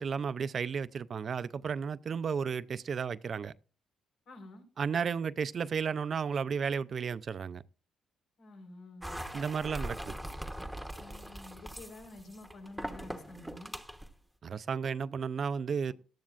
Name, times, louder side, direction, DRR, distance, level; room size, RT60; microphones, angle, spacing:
voice 1, 0.0-3.5 4.8-7.6 9.3-10.2 14.4-15.9, right 6 dB, 50° right, 0.5 m, -33 dB
voice 2, 4.3-4.7 8.4-9.1 11.0-13.7, left 2 dB, 70° left, 4.2 m, -49 dB
sound 1, 9.0-14.1, equal, ahead, 1.1 m, -41 dB
18.0 x 12.5 x 2.5 m
cardioid pair, 90°, 0 cm